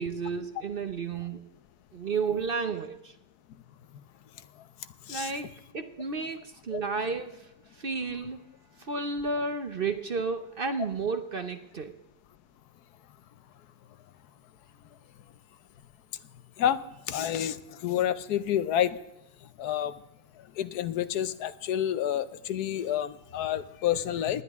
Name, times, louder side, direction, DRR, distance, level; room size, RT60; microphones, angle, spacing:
voice 1, 0.0-1.4 1.9-3.1 5.1-7.5 7.7-8.4 8.8-11.9, right 4 dB, 45° right, 9 dB, 0.8 m, -32 dB
voice 2, 16.6-19.0 19.4-20.0 20.4-24.4, left 10 dB, 85° left, 14 dB, 1.3 m, -29 dB
19.0 x 10.5 x 3.6 m, 0.90 s
omnidirectional pair, 1.6 m